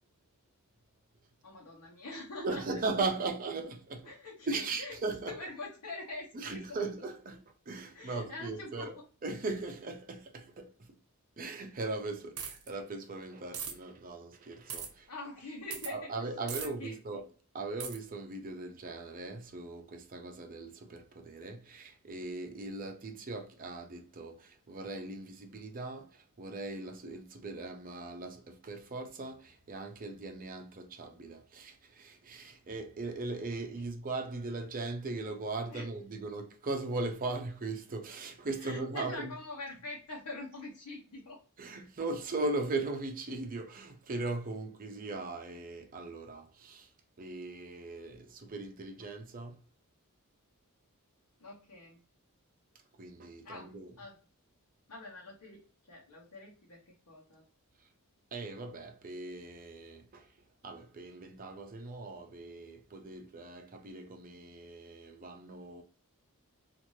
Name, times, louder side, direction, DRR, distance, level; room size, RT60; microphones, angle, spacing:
voice 1, 1.4-3.1 4.0-4.9 5.3-6.8 7.9-9.1 15.1-17.0 35.7-35.9 38.6-41.4 51.4-52.0 53.4-54.2 54.9-57.4, left 2 dB, 85° left, 0.9 m, -45 dB
voice 2, 2.4-4.1 4.5-5.4 6.3-8.9 9.2-11.0 11.4-15.1 15.9-17.3 17.5-39.3 41.6-46.9 47.2-49.6 53.0-53.9 58.3-60.3 60.6-65.8, right 3 dB, 40° right, 0.6 m, -39 dB
sound 1, 12.4-12.7 13.5-13.7 14.7-14.9 15.7-15.9 16.5-16.7 17.8-18.0, right 7 dB, 75° right, 0.8 m, -38 dB
3.1 x 2.5 x 2.6 m
head